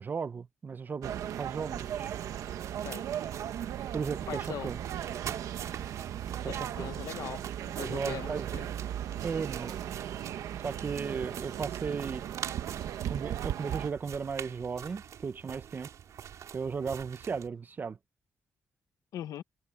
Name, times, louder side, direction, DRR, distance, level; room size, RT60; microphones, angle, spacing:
voice 1, 0.0-2.1 3.9-4.8 6.4-6.9 7.8-8.5 9.2-9.8 10.6-12.2 13.1-15.9 16.5-18.0, right 5 dB, 35° right, 0.6 m, -36 dB
sound 1, 1.0-13.9, right 10 dB, 90° right, 1.3 m, -37 dB
sound 2, 1.9-17.5, right 9 dB, 75° right, 4.3 m, -45 dB
voice 2, 4.3-4.7 6.5-8.7 19.1-19.4, left 11 dB, 90° left, 0.8 m, -41 dB
sound 3, 11.9-17.8, equal, ahead, 7.9 m, -68 dB
cardioid pair, 125°, 6 cm